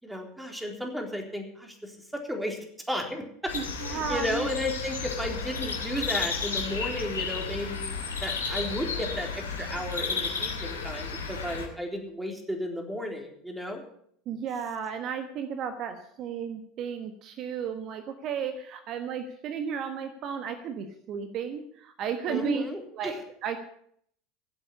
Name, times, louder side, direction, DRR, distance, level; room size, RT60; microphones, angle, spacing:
voice 1, 0.0-2.6 2.9-3.5 3.9-13.8 22.3-23.1, left 1 dB, 5° right, 3 dB, 3.8 m, -34 dB
sound 1, 3.5-11.7, left 4 dB, 85° left, 2.7 m, -33 dB
voice 2, 3.5-4.5 14.3-22.6 22.9-23.6, right 7 dB, 45° right, 8 dB, 1.4 m, -34 dB
15.5 x 8.1 x 8.5 m, 0.64 s
figure-of-eight pair, 75°, 0 cm